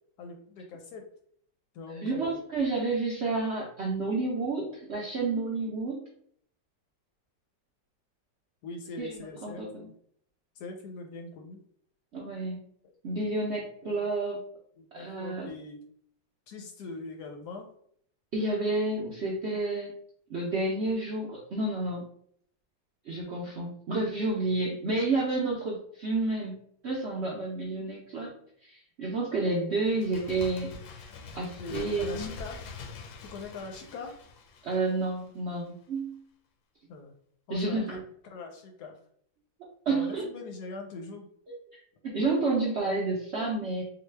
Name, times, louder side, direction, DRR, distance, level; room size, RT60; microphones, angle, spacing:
voice 1, 0.2-1.0 1.7-2.4 8.6-9.9 10.6-11.6 13.8-14.0 14.8-15.8 16.5-17.7 31.6-32.6 33.2-34.2 36.9-37.1 37.5-38.0 38.3-38.9 39.9-41.3, left 3 dB, 70° left, 3 dB, 1.0 m, -42 dB
voice 2, 1.9-6.0 9.0-9.9 12.1-12.6 13.0-14.4 14.9-15.5 18.3-19.9 20.3-22.0 23.1-26.6 26.8-28.3 28.7-31.1 31.3-32.3 34.6-36.2 37.5-38.0 39.9-40.2 41.5-43.8, right 3 dB, 65° right, -4 dB, 0.6 m, -30 dB
Bird, 29.8-35.4 35.7-35.8, left 4 dB, 90° left, 1.3 m, -44 dB
3.9 x 2.3 x 3.2 m, 0.65 s
omnidirectional pair, 2.0 m